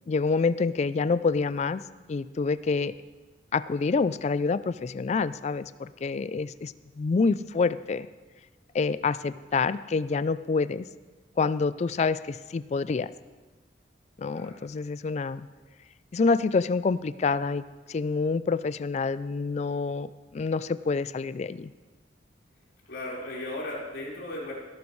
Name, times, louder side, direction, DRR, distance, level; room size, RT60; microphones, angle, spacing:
voice 1, 0.1-1.8 2.1-2.9 3.5-8.1 8.7-10.9 11.4-13.1 14.2-15.5 16.1-17.6 17.9-20.1 20.3-21.7, left 4 dB, 35° left, 15 dB, 0.3 m, -27 dB
voice 2, 22.9-24.5, left 1 dB, 80° left, -6 dB, 4.3 m, -36 dB
16.5 x 12.0 x 3.2 m, 1.3 s
head